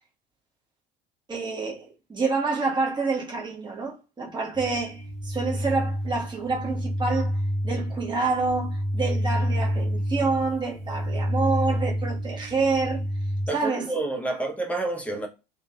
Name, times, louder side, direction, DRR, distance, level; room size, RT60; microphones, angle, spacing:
voice 1, 1.3-13.0 13.5-13.9, right 4 dB, 15° right, 1.1 m, -28 dB
sound 1, 4.5-13.5, equal, 70° left, 0.8 m, -28 dB
voice 2, 13.5-15.3, right 2 dB, 5° left, 0.7 m, -29 dB
3.0 x 2.2 x 2.3 m
figure-of-eight pair, 65°, 30 cm